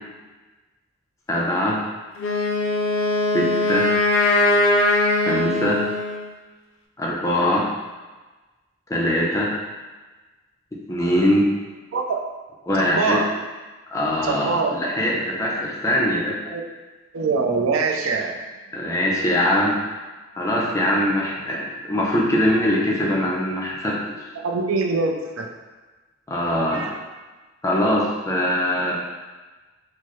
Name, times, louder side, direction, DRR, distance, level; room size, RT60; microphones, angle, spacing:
voice 1, 1.3-1.8 3.3-3.9 5.2-5.8 7.0-7.6 8.9-9.5 10.9-11.4 12.7-13.2 13.9-16.3 18.7-19.8 20.3-24.0 26.3-26.8 27.6-28.9, left 1 dB, 15° left, -4 dB, 0.5 m, -22 dB
Wind instrument woodwind instrument, 2.2-6.3, left 2 dB, 75° left, 0.4 m, -20 dB
voice 2, 12.8-13.4 14.2-14.7 16.5-16.6 17.1-18.4 24.4-25.5 26.7-27.0, right 4 dB, 80° right, 1 dB, 0.4 m, -23 dB
4.5 x 2.1 x 3.0 m, 1.3 s
head